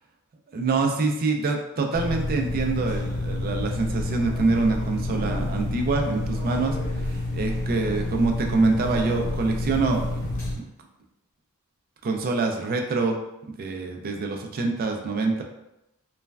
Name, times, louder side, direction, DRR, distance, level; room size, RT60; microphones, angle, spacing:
voice 1, 0.5-6.8 7.0-10.2 10.6-10.7 12.0-13.2 13.6-15.4, right 3 dB, 40° right, 3 dB, 0.3 m, -25 dB
sound 1, 1.9-10.5, left 2 dB, 35° left, 1.1 m, -29 dB
3.1 x 2.1 x 2.3 m, 0.88 s
head